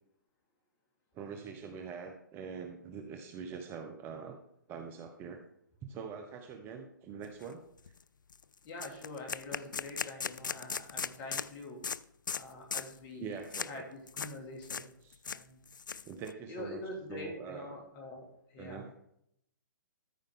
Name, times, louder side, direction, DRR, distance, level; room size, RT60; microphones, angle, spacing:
voice 1, 1.1-4.4 4.7-5.4 5.9-7.9 13.2-13.8 15.0-15.2 16.0-16.8 17.1-17.7 18.6-18.9, right 6 dB, 20° right, 5 dB, 0.8 m, -44 dB
sound 1, 7.4-7.5 7.9-8.0 8.3-8.4 8.8-11.5 11.8-12.0 12.3-12.4 12.7-13.0 13.5-13.7 14.1-14.3 14.6-14.9 15.1-16.3, left 6 dB, 75° left, 0.4 m, -38 dB
voice 2, 8.6-11.9 12.3-13.4 13.6-14.9 15.3-15.6 16.5-18.9, left 2 dB, 30° left, 1 dB, 2.5 m, -45 dB
13.5 x 5.2 x 3.7 m, 0.76 s
figure-of-eight pair, 130°, 11 cm